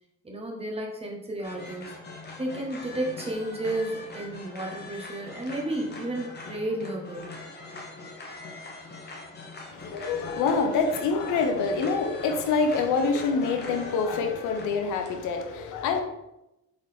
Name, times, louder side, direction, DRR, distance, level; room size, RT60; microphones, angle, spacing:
voice 1, 0.2-1.9 2.4-7.3, right 1 dB, 20° right, -1 dB, 1.2 m, -32 dB
sound 1, 1.4-15.4, left 3 dB, 35° left, 1.1 m, -42 dB
voice 2, 9.7-16.0, left 4 dB, 90° left, 5 dB, 0.7 m, -26 dB
4.0 x 3.9 x 3.4 m, 0.92 s
cardioid pair, 90°, 30 cm